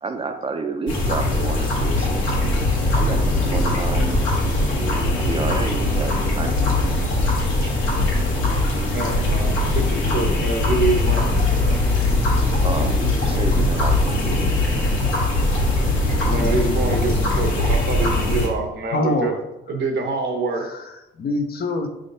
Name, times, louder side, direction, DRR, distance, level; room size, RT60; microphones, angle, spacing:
voice 1, 0.0-2.7 2.9-4.2 5.2-7.0 12.6-14.8, right 4 dB, 30° right, 7 dB, 0.5 m, -30 dB
sound 1, 0.9-18.5, left 2 dB, 85° left, 1.3 m, -20 dB
voice 2, 5.3-5.6 18.9-19.4 19.7-19.9 20.6-21.9, left 2 dB, 50° left, 6 dB, 0.6 m, -27 dB
voice 3, 8.9-11.8 16.2-19.3 19.7-20.7, right 3 dB, 60° right, 4 dB, 0.9 m, -26 dB
5.0 x 3.5 x 2.6 m, 0.92 s
cardioid pair, 90°, 20 cm